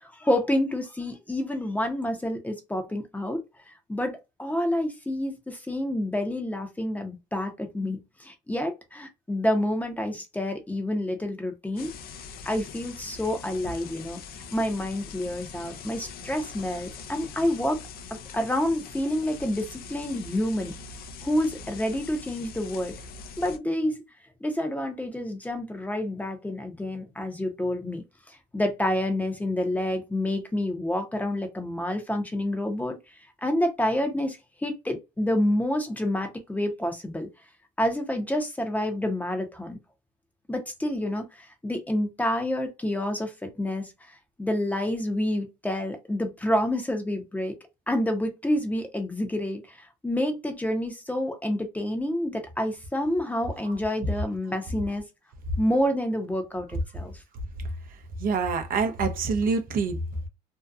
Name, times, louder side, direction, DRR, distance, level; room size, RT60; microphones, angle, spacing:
voice 1, 0.0-3.4 3.9-11.9 12.5-14.2 14.5-17.8 18.1-20.7 21.2-22.9 23.4-24.0 24.4-28.0 28.5-33.0 33.4-37.3 37.8-39.8 40.5-43.3 43.6-43.9 44.4-47.5 47.9-49.8 50.0-55.0 55.6-57.1, left 1 dB, 10° left, 0.7 m, -28 dB
sound 1, 11.8-23.6, left 5 dB, 60° left, 0.5 m, -42 dB
voice 2, 58.2-60.3, right 4 dB, 55° right, 0.6 m, -26 dB
2.6 x 2.3 x 2.3 m
cardioid pair, 110°, 17 cm